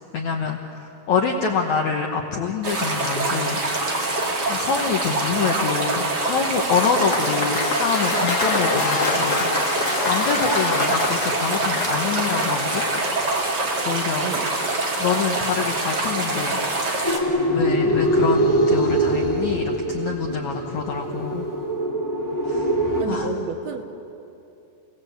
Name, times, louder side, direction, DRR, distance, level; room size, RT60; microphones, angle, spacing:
voice 1, 0.1-3.6 4.5-12.9 13.9-14.3 15.0-16.9 17.5-21.5 22.4-22.7 23.1-23.3, left 6 dB, 70° left, 2 dB, 1.8 m, -26 dB
sound 1, 2.6-17.2, right 2 dB, 35° right, 1.9 m, -25 dB
Cheering / Applause / Crowd, 6.5-13.6, left 3 dB, 35° left, 1.5 m, -27 dB
voice 2, 14.2-14.5 23.0-23.9, right 6 dB, 70° right, 6 dB, 2.9 m, -31 dB
sound 2, 17.0-23.0, right 1 dB, 10° left, 0.9 m, -22 dB
29.5 x 18.0 x 8.0 m, 2.8 s
omnidirectional pair, 4.9 m